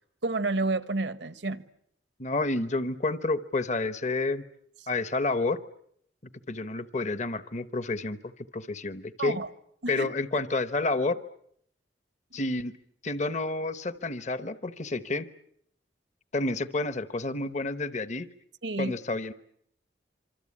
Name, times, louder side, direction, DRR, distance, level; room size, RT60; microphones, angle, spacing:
voice 1, 0.2-1.6 9.2-9.5 9.8-10.1 18.6-19.0, right 3 dB, 75° right, 1.3 m, -30 dB
voice 2, 2.2-4.4 4.9-5.6 6.5-8.2 8.5-9.4 9.9-11.2 12.3-12.8 13.0-15.3 16.3-18.3 18.8-19.3, left 2 dB, 40° left, 1.0 m, -29 dB
26.5 x 25.0 x 8.6 m
head